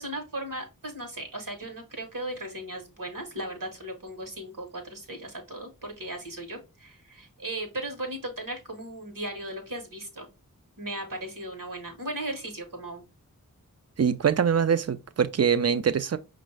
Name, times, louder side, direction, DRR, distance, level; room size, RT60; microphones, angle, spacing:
voice 1, 0.0-10.3 10.8-13.1, right 1 dB, 75° right, 1.2 m, -37 dB
voice 2, 14.0-16.2, right 7 dB, 50° right, 0.4 m, -23 dB
5.3 x 2.6 x 3.2 m
wide cardioid pair, 45°, 33 cm